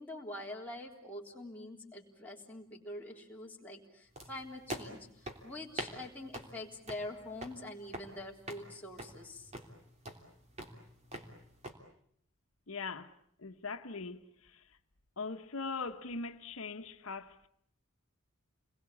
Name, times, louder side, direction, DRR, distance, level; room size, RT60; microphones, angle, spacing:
voice 1, 0.0-5.1 5.4-9.5, left 1 dB, 10° left, 3.7 m, -45 dB
sound 1, 4.2-11.7, right 1 dB, 30° right, 3.2 m, -46 dB
voice 2, 12.7-13.1 13.4-14.6 15.2-17.5, left 4 dB, 80° left, 1.2 m, -41 dB
30.0 x 22.0 x 8.5 m
head